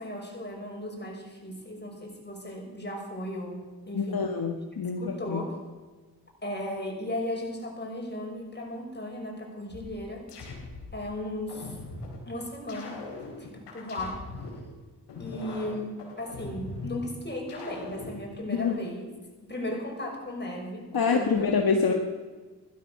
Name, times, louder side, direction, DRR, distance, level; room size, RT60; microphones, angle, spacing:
voice 1, 0.0-4.3 4.8-5.6 6.4-10.3 10.9-11.8 12.3-13.0 13.4-14.2 15.2-19.0 19.5-21.5 21.8-22.0, left 1 dB, 25° left, 0 dB, 6.3 m, -36 dB
voice 2, 3.9-5.4 18.5-18.8 20.9-21.9, left 5 dB, 60° left, 3 dB, 1.7 m, -26 dB
sound 1, 9.7-11.0 11.5-12.2 12.7-14.6 15.1-17.0 17.5-18.2, left 3 dB, 90° left, 3.7 m, -41 dB
15.0 x 13.0 x 6.7 m, 1.3 s
cardioid pair, 50°, 40 cm